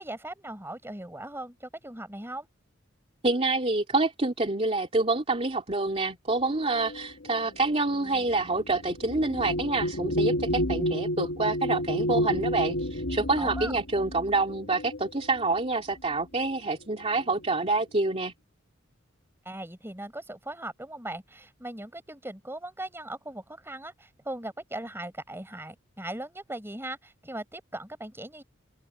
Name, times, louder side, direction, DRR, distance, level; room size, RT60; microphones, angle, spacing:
voice 1, 0.0-2.5 13.4-13.8 19.5-28.4, right 1 dB, 10° right, 5.4 m, -39 dB
voice 2, 3.2-18.3, right 3 dB, 30° right, 2.7 m, -27 dB
sound 1, 6.7-15.6 16.5-16.7 17.0-17.6, equal, 70° left, 1.9 m, -31 dB
open air
head